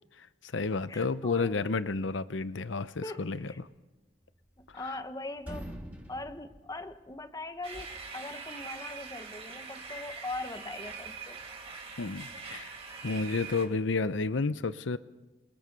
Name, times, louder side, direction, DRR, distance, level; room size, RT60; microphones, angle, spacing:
voice 1, 0.2-3.5 4.7-4.9 12.0-12.7 13.0-15.0, left 3 dB, 80° left, 15 dB, 0.7 m, -31 dB
voice 2, 0.9-1.5 3.0-3.6 4.6-5.8 6.1-11.4, left 2 dB, 20° left, 10 dB, 1.0 m, -41 dB
sound 1, 4.2-5.1 5.4-7.5, equal, 10° right, 2.8 m, -45 dB
sound 2, 7.6-13.6, right 5 dB, 35° right, 3.5 m, -43 dB
27.5 x 22.5 x 5.3 m, 1.1 s
head